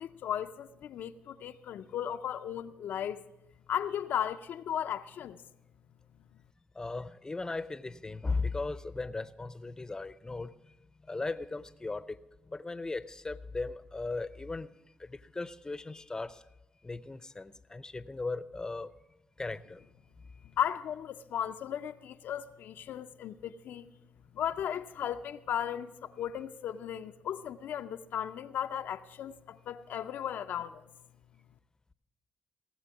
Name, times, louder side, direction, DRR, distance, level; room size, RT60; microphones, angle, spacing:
voice 1, 0.0-3.2 3.7-5.4 20.6-23.9 24.3-30.8, left 9 dB, 70° left, 0.4 m, -36 dB
voice 2, 6.8-10.5 11.1-12.2 12.5-14.7 15.1-16.3 16.8-18.9 19.4-19.8, left 3 dB, 20° left, 0.6 m, -37 dB
17.5 x 7.5 x 6.0 m
supercardioid pair, 55°, 3 cm